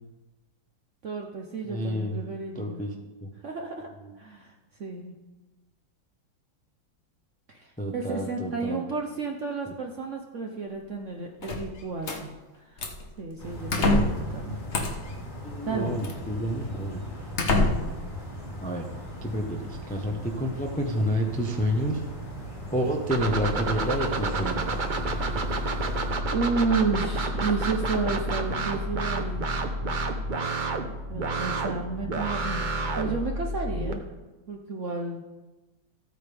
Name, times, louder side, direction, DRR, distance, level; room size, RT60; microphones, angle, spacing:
voice 1, 1.0-2.8 3.4-3.9 4.2-4.5 4.8-5.1 7.5-12.3 12.6-12.8 13.2-14.8 15.6-16.0 26.3-29.4 31.1-32.6 32.9-34.1 34.5-35.2, right 4 dB, 55° right, 2 dB, 0.8 m, -31 dB
voice 2, 1.7-2.2 2.5-2.9 3.2-3.3 7.8-8.9 15.4-17.0 17.4-18.0 18.6-18.9 19.2-22.0 22.7-24.8, equal, 10° left, 1 dB, 0.5 m, -29 dB
sound 1, 11.4-12.2 12.8-13.1 13.7-14.3 14.7-15.1 16.0-16.2 16.7-16.8 17.4-18.0, left 2 dB, 45° left, 1.1 m, -25 dB
sound 2, 13.4-26.1, equal, 60° left, 3.7 m, -39 dB
sound 3, 23.1-33.9, right 2 dB, 75° right, 0.4 m, -29 dB
14.0 x 9.0 x 3.5 m, 1.1 s
omnidirectional pair, 2.1 m